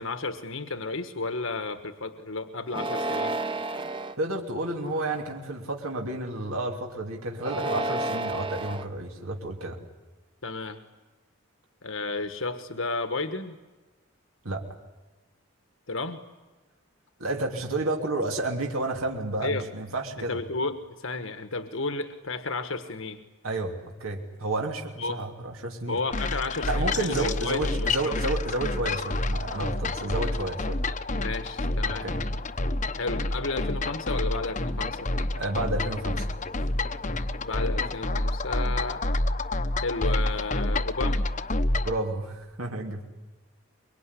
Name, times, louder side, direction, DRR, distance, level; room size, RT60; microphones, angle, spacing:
voice 1, 0.0-3.4 10.4-10.8 11.8-13.6 15.9-16.2 19.4-19.6 20.2-23.2 25.0-25.2 25.9-28.2 31.1-32.1 33.0-35.0 37.4-39.0 39.8-41.2, left 3 dB, 70° left, 8 dB, 1.4 m, -32 dB
sound 1, 2.7-4.1 4.8-5.4 7.3-8.9, right 2 dB, 25° right, 1.1 m, -31 dB
voice 2, 4.2-9.8 14.4-14.6 17.2-20.4 23.4-26.0 26.7-30.8 31.8-32.2 35.3-36.3 41.8-43.0, right 2 dB, 85° right, 1 dB, 3.0 m, -31 dB
sound 2, 26.1-42.0, left 2 dB, 35° left, 0.9 m, -28 dB
24.5 x 23.0 x 9.9 m, 1.2 s
head